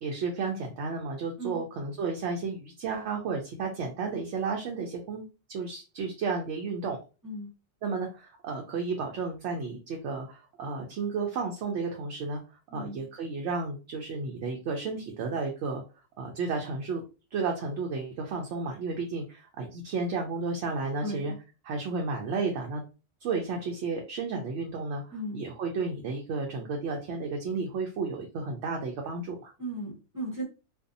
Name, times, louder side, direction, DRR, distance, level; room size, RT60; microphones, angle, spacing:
voice 1, 0.0-7.0 7.8-12.4 12.7-15.8 16.2-17.0 17.3-21.3 21.6-22.8 23.2-29.5, right 4 dB, 70° right, 1 dB, 0.8 m, -32 dB
voice 2, 12.7-13.0 21.0-21.4 25.1-25.4 29.6-30.4, right 1 dB, 20° right, -4 dB, 0.6 m, -36 dB
2.6 x 2.3 x 2.5 m, 0.31 s
omnidirectional pair, 1.3 m